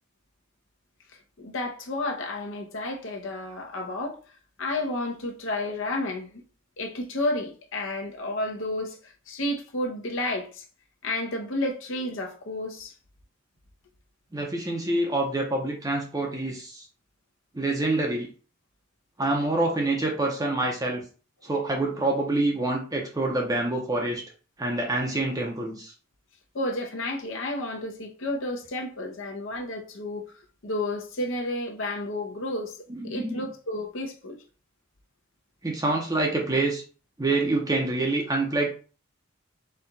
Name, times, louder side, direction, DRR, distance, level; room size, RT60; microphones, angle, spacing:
voice 1, 1.4-4.2 4.6-6.4 6.8-10.6 11.0-12.9 26.5-30.3 30.6-32.8 33.0-34.4, left 1 dB, 70° left, 0.8 m, -31 dB
voice 2, 14.3-16.9 17.5-18.3 19.2-21.0 21.4-24.2 24.6-25.9 32.9-33.5 35.6-36.8 37.2-38.7, right 2 dB, 20° right, 0.7 m, -26 dB
4.4 x 2.3 x 3.9 m
head